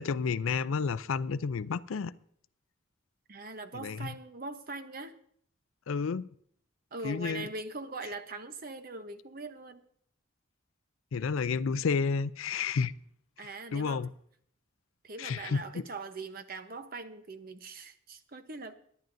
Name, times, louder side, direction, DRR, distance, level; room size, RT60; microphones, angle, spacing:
voice 1, 0.0-2.1 3.7-4.1 5.9-6.3 7.0-7.5 11.1-12.9 13.7-14.1 15.2-15.6, left 5 dB, 80° left, 0.4 m, -30 dB
voice 2, 3.3-5.2 6.9-9.8 13.4-14.0 15.0-18.7, right 3 dB, 45° right, 0.8 m, -41 dB
23.0 x 10.5 x 2.6 m
head